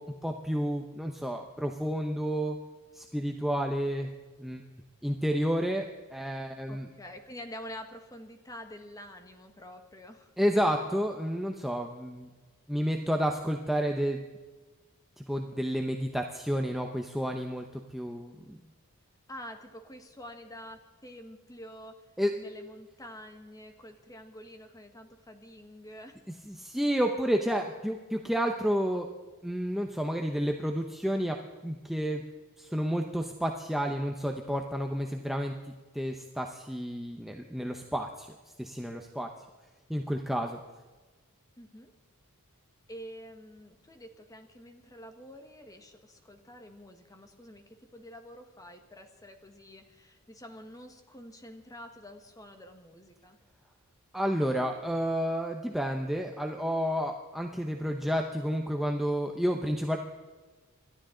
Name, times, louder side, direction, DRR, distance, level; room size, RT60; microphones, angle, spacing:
voice 1, 0.0-2.6 2.9-4.1 4.4-4.6 5.0-5.9 6.1-6.9 10.4-12.3 12.7-14.2 15.2-18.6 22.2-22.4 26.4-29.1 29.4-31.4 31.6-32.2 32.6-35.5 35.9-38.3 38.6-39.3 39.9-40.6 54.1-60.0, equal, ahead, 2 dB, 0.7 m, -30 dB
voice 2, 6.7-10.3 19.3-26.2 41.6-41.9 42.9-53.4, equal, 15° left, 6 dB, 1.4 m, -47 dB
27.5 x 12.5 x 3.9 m, 1.3 s
head